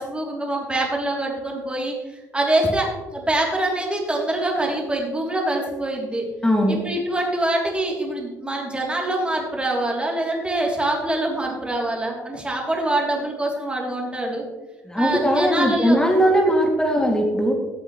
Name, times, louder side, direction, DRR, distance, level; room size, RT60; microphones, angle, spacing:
voice 1, 0.0-1.9 2.3-6.2 6.7-14.4 15.0-16.0 16.2-16.3, right 1 dB, 15° right, -1 dB, 3.1 m, -24 dB
voice 2, 6.4-6.8 14.9-17.5, equal, 10° left, 0 dB, 2.4 m, -19 dB
15.5 x 8.0 x 3.2 m, 1.2 s
hypercardioid pair, 55°, 8 cm